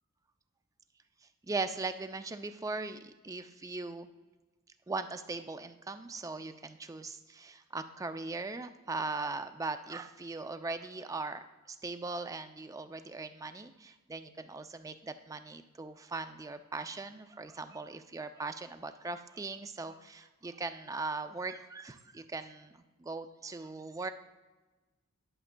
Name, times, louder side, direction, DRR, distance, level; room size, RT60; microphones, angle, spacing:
voice 1, 1.5-4.1 4.9-24.1, right 3 dB, 15° right, 9 dB, 0.3 m, -39 dB
11.0 x 6.6 x 2.2 m, 1.2 s
head